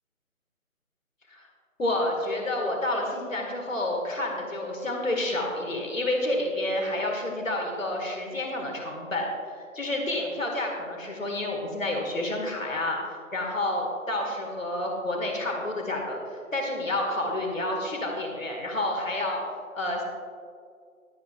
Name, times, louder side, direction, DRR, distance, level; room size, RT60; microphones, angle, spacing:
voice 1, 1.8-9.3 9.7-13.0 13.3-19.4 19.8-20.0, left 1 dB, 65° left, 0 dB, 2.2 m, -29 dB
20.5 x 7.9 x 2.5 m, 2.2 s
figure-of-eight pair, 160°, 43 cm